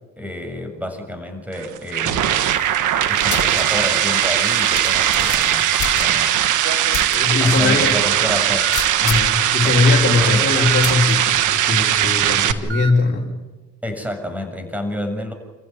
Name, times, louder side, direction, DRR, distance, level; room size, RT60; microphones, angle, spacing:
voice 1, 0.2-2.4 2.9-6.6 6.9-8.8 9.6-9.8 10.2-10.5 13.8-15.3, left 1 dB, 5° right, 5 dB, 6.9 m, -29 dB
sound 1, 1.5-12.5, right 11 dB, 80° right, 1.5 m, -19 dB
Alarm, 2.3-6.3 6.6-7.1 7.9-8.0 8.6-8.8 10.7-10.9 12.7-12.9, right 3 dB, 45° right, 2.3 m, -32 dB
sound 2, 3.3-3.6 4.0-4.1 4.8-6.4 6.9-7.2 7.6-7.7 8.7-9.4 10.8-11.1, left 11 dB, 75° left, 1.3 m, -29 dB
voice 2, 7.1-8.0 9.0-13.4, left 3 dB, 35° left, -1 dB, 4.1 m, -20 dB
29.0 x 15.0 x 9.6 m, 1.2 s
cardioid pair, 90°, 30 cm